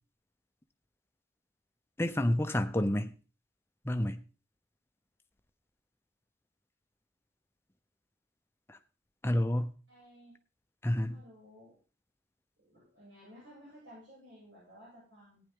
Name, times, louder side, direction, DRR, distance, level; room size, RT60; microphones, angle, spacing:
voice 1, 2.0-3.1 3.8-4.2 8.7-8.8 9.2-9.7 10.8-11.2, left 1 dB, 10° left, 0.7 m, -29 dB
voice 2, 9.9-10.4 11.0-11.7 12.6-15.4, equal, 70° right, 7.3 m, -55 dB
15.0 x 9.9 x 3.8 m
head